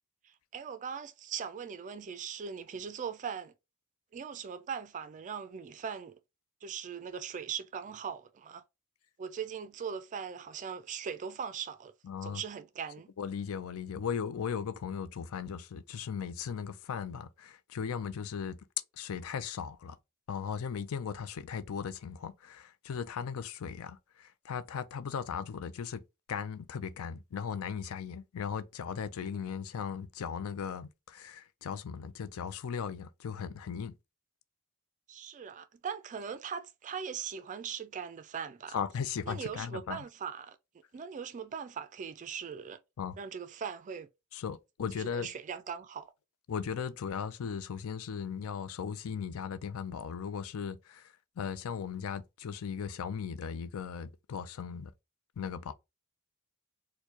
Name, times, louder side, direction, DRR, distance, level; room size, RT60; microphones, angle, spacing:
voice 1, 0.2-3.5 4.1-6.2 6.6-8.6 9.2-11.9 12.2-13.1 35.1-38.8 39.3-40.6 40.9-42.8 43.2-44.1 44.9-46.1, right 7 dB, 35° right, 0.3 m, -40 dB
voice 2, 12.0-12.4 13.2-18.6 19.0-20.0 20.3-26.0 26.3-33.9 38.7-40.0 43.0-43.2 44.3-45.3 46.5-54.9 55.4-55.7, left 7 dB, 70° left, 0.4 m, -37 dB
4.4 x 2.2 x 2.7 m
head